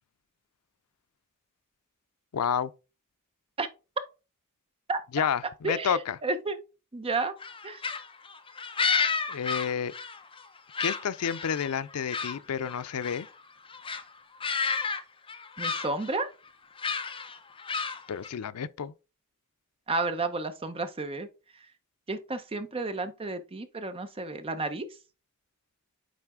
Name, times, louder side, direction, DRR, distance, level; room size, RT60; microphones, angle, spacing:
voice 1, 2.3-2.7 5.1-6.2 9.3-9.9 10.8-13.3 18.1-18.9, left 7 dB, 90° left, 0.5 m, -30 dB
voice 2, 5.6-6.6 6.9-7.3 7.6-7.8 15.6-16.3 19.9-21.3 22.1-24.9, right 3 dB, 25° right, 0.7 m, -31 dB
sound 1, 7.4-10.5 10.7-12.4 12.6-13.3 13.7-14.0 14.4-15.0 15.3-16.2 16.8-18.3, left 5 dB, 25° left, 0.7 m, -31 dB
9.2 x 3.3 x 3.6 m
head